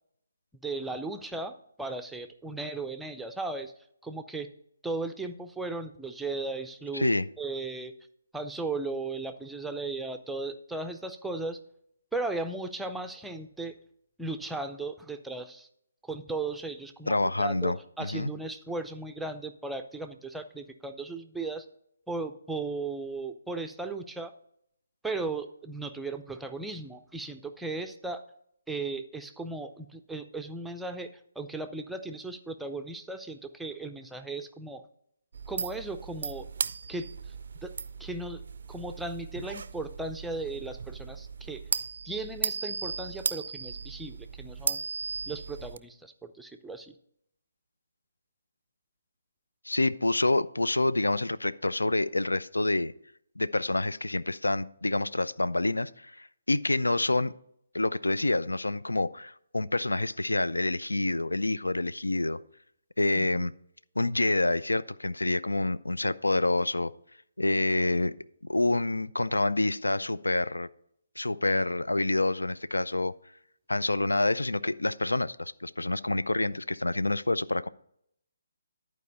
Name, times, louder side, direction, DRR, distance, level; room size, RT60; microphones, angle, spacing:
voice 1, 0.6-3.7 4.0-4.5 4.8-7.1 7.4-7.9 8.3-11.6 12.1-13.7 14.2-15.7 16.0-21.7 22.1-24.3 25.0-28.2 28.7-31.1 31.4-34.8 35.5-36.5 36.9-37.1 37.6-37.7 38.0-38.4 38.7-41.6 42.1-44.8 45.3-46.9, right 3 dB, 5° right, 7 dB, 0.5 m, -36 dB
voice 2, 6.9-7.3 17.1-18.3 49.7-52.9 53.4-57.3 57.7-62.4 63.0-63.5 64.0-66.9 67.4-68.1 68.4-70.7 71.2-73.1 73.7-77.7, left 2 dB, 85° left, 16 dB, 0.4 m, -27 dB
sound 1, 35.3-45.8, right 5 dB, 60° right, 0.4 m, -36 dB
11.0 x 4.6 x 5.3 m, 0.70 s
figure-of-eight pair, 145°, 0 cm